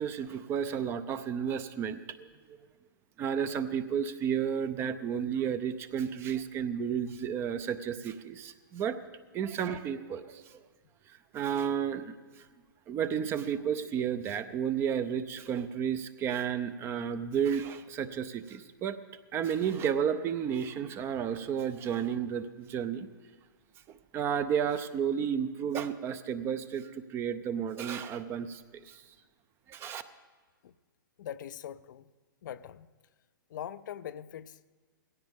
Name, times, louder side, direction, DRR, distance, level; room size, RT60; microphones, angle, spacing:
voice 1, 0.0-2.6 3.2-9.0 9.3-10.6 11.1-12.5 12.9-19.0 19.3-23.1 23.9-29.0 29.7-30.0, right 8 dB, 20° right, 0.5 m, -32 dB
voice 2, 31.2-32.1 32.4-32.9 33.5-34.7, left 10 dB, 60° left, 0.5 m, -42 dB
19.0 x 16.5 x 3.6 m
hypercardioid pair, 145°, 11 cm